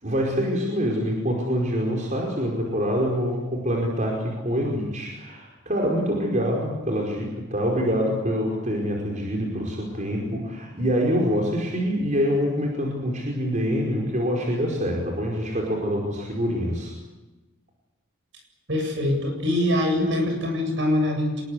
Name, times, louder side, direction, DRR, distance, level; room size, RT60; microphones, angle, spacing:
voice 1, 0.0-16.9, equal, 35° right, 0 dB, 5.0 m, -25 dB
voice 2, 18.7-21.4, left 1 dB, 60° right, 4 dB, 7.9 m, -23 dB
26.0 x 21.0 x 8.2 m, 1.1 s
head